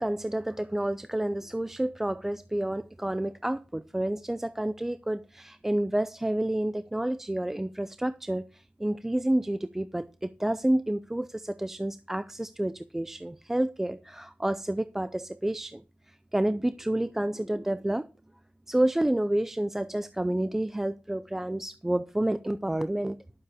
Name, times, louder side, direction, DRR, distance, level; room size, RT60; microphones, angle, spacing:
voice 1, 0.0-18.1 18.7-23.2, right 1 dB, 10° right, 13 dB, 0.4 m, -29 dB
11.5 x 7.1 x 4.8 m, 0.34 s
wide cardioid pair, 105°, 4 cm